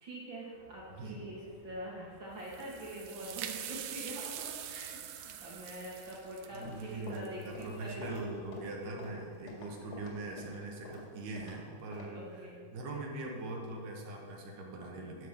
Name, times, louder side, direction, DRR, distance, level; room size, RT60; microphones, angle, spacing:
voice 1, 0.0-8.3 8.8-9.2 12.1-12.6, right 1 dB, 45° right, -4 dB, 1.6 m, -45 dB
sound 1, 0.5-8.6, left 1 dB, 70° left, 3.7 m, -61 dB
voice 2, 0.9-1.3 6.5-12.2 12.7-15.3, right 2 dB, 65° right, 0 dB, 2.4 m, -42 dB
sound 2, 2.4-7.9, right 10 dB, 90° right, 1.9 m, -44 dB
Run, 6.4-11.6 11.9-12.1, left 1 dB, 50° left, 2.7 m, -47 dB
13.0 x 5.2 x 6.6 m, 2.1 s
omnidirectional pair, 4.6 m